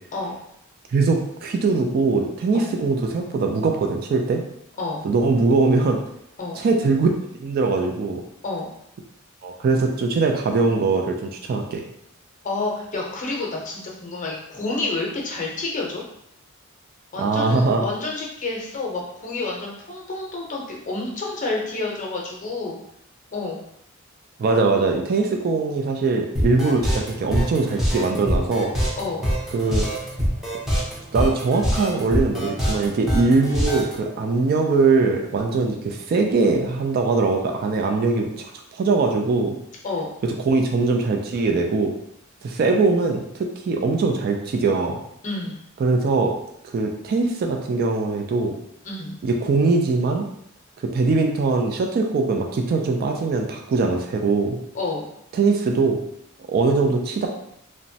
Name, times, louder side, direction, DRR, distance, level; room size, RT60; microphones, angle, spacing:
voice 1, 0.9-4.4 5.0-6.0 6.6-8.2 9.4-11.8 17.2-17.8 24.4-28.7 29.5-29.9 31.1-38.5 38.7-39.6 40.2-41.9 42.4-45.0 45.8-46.3 46.7-48.6 49.2-50.3 50.8-54.6 55.3-56.0 56.5-57.3, right 3 dB, 45° right, 2 dB, 0.3 m, -21 dB
voice 2, 12.4-16.0 17.1-22.8 23.3-23.6 29.0-29.3 39.8-40.1 45.2-45.6 48.8-49.2 54.7-55.0, left 3 dB, 40° left, -2 dB, 0.6 m, -29 dB
sound 1, 26.4-33.9, equal, ahead, 0.6 m, -24 dB
3.0 x 2.1 x 2.7 m, 0.75 s
head